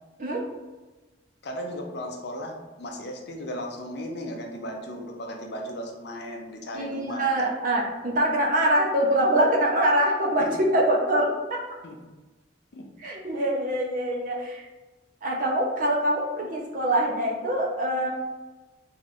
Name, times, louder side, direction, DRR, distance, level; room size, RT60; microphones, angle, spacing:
voice 1, 1.4-7.5 11.8-12.0 12.7-12.8, equal, 60° left, 2 dB, 0.5 m, -36 dB
voice 2, 6.7-11.6 13.0-14.7 15.2-18.1, right 1 dB, 45° right, -1 dB, 0.6 m, -24 dB
2.8 x 2.4 x 4.1 m, 1.2 s
head